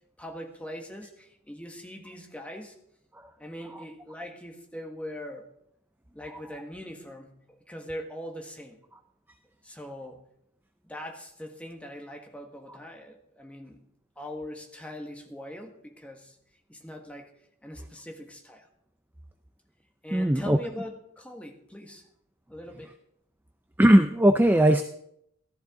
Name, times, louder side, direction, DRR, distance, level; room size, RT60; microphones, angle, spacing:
voice 1, 0.2-2.8 3.4-5.5 6.1-8.8 9.6-10.3 10.8-13.9 14.2-16.4 16.7-17.3 17.6-18.7 20.0-22.1 22.5-22.9, equal, 5° left, 2 dB, 1.5 m, -41 dB
voice 2, 20.1-20.6 23.8-24.8, right 1 dB, 10° right, 8 dB, 0.4 m, -19 dB
14.5 x 13.5 x 3.7 m, 0.74 s
head